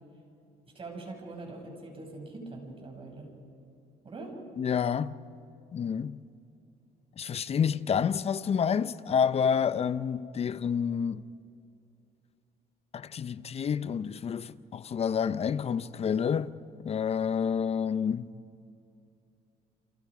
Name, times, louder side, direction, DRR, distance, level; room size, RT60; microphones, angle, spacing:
voice 1, 0.7-3.3 4.0-4.4, right 2 dB, 35° right, 6.5 m, -42 dB
voice 2, 4.6-5.2 5.7-6.2 7.2-11.2 12.9-16.6 16.8-18.3, left 7 dB, 35° left, 0.7 m, -29 dB
29.5 x 27.5 x 5.0 m
cardioid pair, 110°, 17 cm